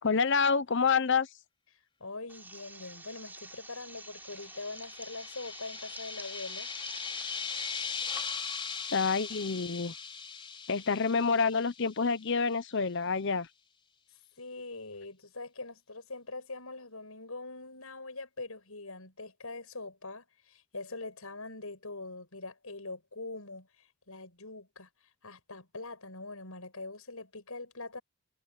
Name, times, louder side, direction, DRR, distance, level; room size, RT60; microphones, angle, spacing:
voice 1, 0.0-1.3 8.9-9.9 10.7-13.5, left 5 dB, 55° left, 0.8 m, -27 dB
voice 2, 2.0-6.7 10.8-10.9 14.4-23.7 24.1-24.9 25.2-28.0, left 3 dB, 75° left, 6.5 m, -43 dB
sound 1, 2.3-9.6, right 2 dB, 10° right, 3.6 m, -49 dB
sound 2, 4.0-12.3, left 6 dB, 25° left, 5.1 m, -40 dB
head